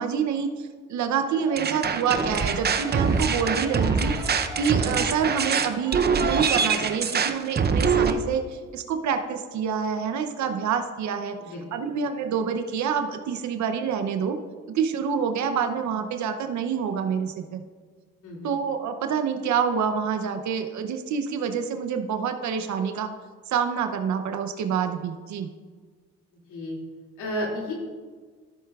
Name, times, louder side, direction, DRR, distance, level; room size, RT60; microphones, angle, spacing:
voice 1, 0.0-11.4 11.7-14.4 14.7-17.6 18.4-23.1 23.5-25.5, right 6 dB, 70° right, 7 dB, 0.7 m, -27 dB
sound 1, 1.2-7.1, right 2 dB, 10° right, 1.0 m, -41 dB
sound 2, 1.6-8.1, right 5 dB, 35° right, 0.6 m, -24 dB
voice 2, 11.4-11.9 18.2-18.6 26.5-26.8 27.2-27.7, equal, 90° left, -2 dB, 2.5 m, -32 dB
13.5 x 7.9 x 2.4 m, 1.5 s
cardioid pair, 90°, 30 cm